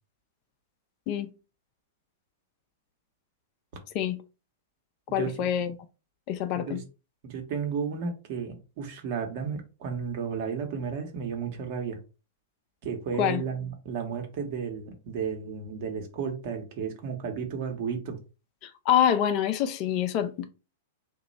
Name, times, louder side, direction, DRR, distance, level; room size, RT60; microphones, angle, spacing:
voice 1, 5.1-5.7 6.3-6.8 13.2-13.4 18.6-20.5, left 10 dB, 40° left, 0.4 m, -26 dB
voice 2, 7.2-12.0 12.8-18.2, right 6 dB, 50° right, 1.0 m, -33 dB
2.9 x 2.3 x 4.0 m
figure-of-eight pair, 100°, 0 cm